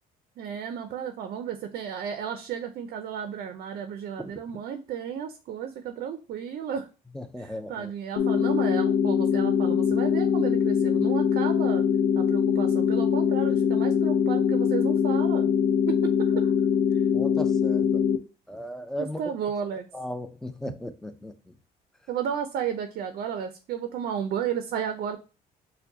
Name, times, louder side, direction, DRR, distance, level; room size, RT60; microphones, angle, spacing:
voice 1, 0.4-6.9 7.4-11.8 12.2-15.5 15.9-16.5 16.9-17.0 19.0-19.9 22.1-25.2, right 8 dB, 60° right, 0.5 m, -33 dB
voice 2, 7.1-7.9 17.1-18.0 18.5-19.2 19.9-21.5, left 1 dB, 5° left, 0.4 m, -36 dB
sound 1, 8.2-18.2, left 7 dB, 75° left, 0.6 m, -23 dB
4.5 x 2.2 x 2.7 m
cardioid pair, 110°, 17 cm